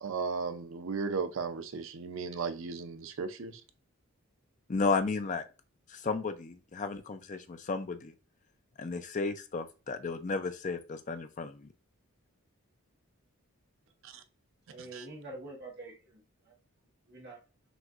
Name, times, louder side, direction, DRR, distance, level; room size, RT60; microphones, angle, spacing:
voice 1, 0.0-3.6 14.0-14.1 14.9-15.1, right 5 dB, 65° right, 0.5 m, -35 dB
voice 2, 4.7-5.4 5.9-8.1 8.8-11.7, left 4 dB, 35° left, 0.4 m, -33 dB
voice 3, 14.7-16.5 17.1-17.4, right 2 dB, 50° right, 1.2 m, -46 dB
6.1 x 2.6 x 2.4 m
head